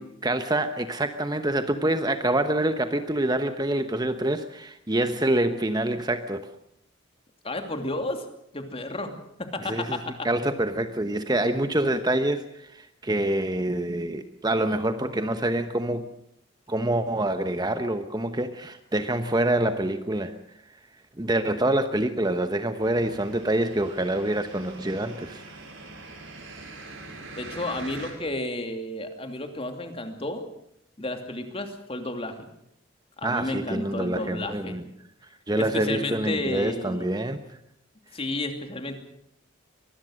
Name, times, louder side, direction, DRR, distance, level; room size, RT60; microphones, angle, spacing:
voice 1, 0.0-6.5 9.6-10.0 10.2-16.1 16.7-20.3 21.2-25.6 33.2-34.8 35.5-37.4, right 1 dB, 20° right, 9 dB, 1.0 m, -26 dB
voice 2, 7.4-8.2 8.5-10.3 27.4-30.5 31.0-32.4 33.2-34.8 35.6-37.1 38.1-39.0, left 2 dB, 30° left, 6 dB, 2.8 m, -32 dB
sound 1, 22.8-28.1, right 2 dB, 75° right, 6.6 m, -43 dB
24.0 x 20.0 x 6.5 m, 0.73 s
head